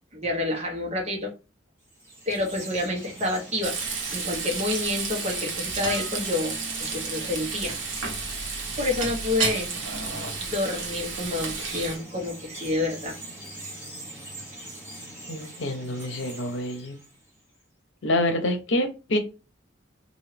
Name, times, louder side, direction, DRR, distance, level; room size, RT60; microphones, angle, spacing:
voice 1, 0.1-1.3 2.3-7.8 8.3-9.7 10.4-13.2, left 2 dB, 35° right, -1 dB, 1.2 m, -29 dB
Chirp tweet, 1.8-17.4, right 1 dB, 10° right, 1.6 m, -43 dB
Frying (food), 3.6-12.0, right 4 dB, 70° right, 1.0 m, -31 dB
voice 2, 15.3-17.0 18.0-19.2, left 1 dB, 70° left, 6 dB, 0.8 m, -27 dB
3.9 x 2.7 x 3.3 m, 0.31 s
head